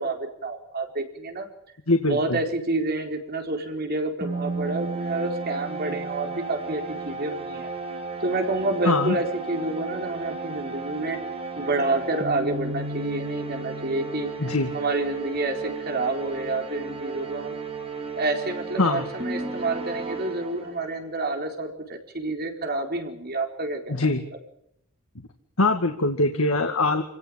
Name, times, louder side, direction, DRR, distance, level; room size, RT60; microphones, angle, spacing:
voice 1, 0.0-1.5 2.1-7.7 8.2-11.2 11.6-14.3 14.7-17.6 18.1-24.0, right 2 dB, 45° right, 4 dB, 4.3 m, -28 dB
voice 2, 1.9-2.4 8.9-9.2 14.4-14.7 18.8-19.1 23.9-24.2 25.6-27.0, left 2 dB, 80° left, 5 dB, 2.2 m, -22 dB
sound 1, 4.2-21.0, right 3 dB, 30° right, 4.6 m, -34 dB
28.0 x 17.5 x 8.9 m, 0.77 s
head